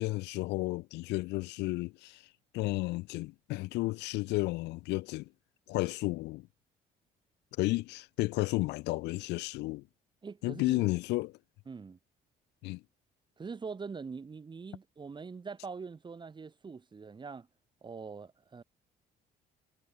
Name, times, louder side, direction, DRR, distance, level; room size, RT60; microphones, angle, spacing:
voice 1, 0.0-5.3 5.7-6.5 7.6-9.8 10.4-11.3 12.6-12.8, left 20 dB, 90° left, 2.0 m, -32 dB
voice 2, 10.2-10.9 11.7-12.0 13.4-17.5 17.8-18.6, right 5 dB, 25° right, 3.5 m, -43 dB
cardioid pair, 110°, 17 cm